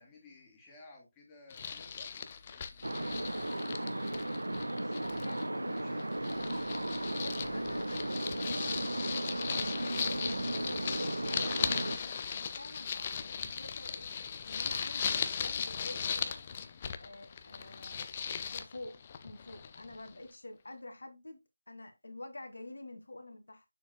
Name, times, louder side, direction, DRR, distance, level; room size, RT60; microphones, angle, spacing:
voice 1, 0.0-4.2 4.7-6.1, left 2 dB, 10° left, 2.2 m, -58 dB
sound 1, 1.5-5.5 5.8-20.1, left 7 dB, 25° left, 0.6 m, -38 dB
sound 2, 2.8-12.0, right 1 dB, 85° right, 0.6 m, -35 dB
voice 2, 5.2-6.0 7.1-10.3 10.7-14.1 14.4-16.5 17.0-18.0 18.5-21.4 21.7-23.6, left 2 dB, 75° left, 1.7 m, -48 dB
7.0 x 6.9 x 2.2 m
figure-of-eight pair, 165°, 0 cm